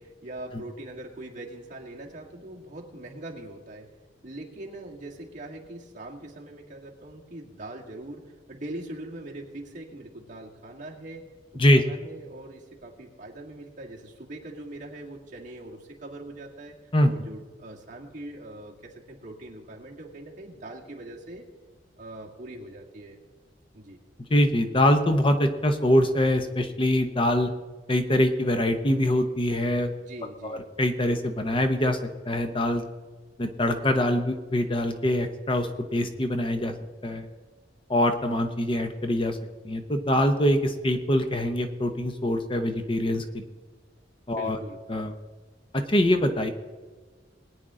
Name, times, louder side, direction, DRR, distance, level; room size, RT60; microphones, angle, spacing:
voice 1, 0.0-3.9 4.2-11.3 11.5-16.8 17.0-21.5 22.0-23.2 23.7-24.0 30.0-30.6 44.4-44.8, right 1 dB, 45° right, -2 dB, 2.2 m, -42 dB
voice 2, 24.3-27.5 27.9-29.9 30.4-32.8 33.4-36.8 37.0-37.3 37.9-39.4 39.6-43.4 44.3-44.6 44.9-45.1 45.7-46.5, left 1 dB, 30° left, 7 dB, 0.8 m, -24 dB
21.0 x 9.4 x 3.8 m, 1.4 s
head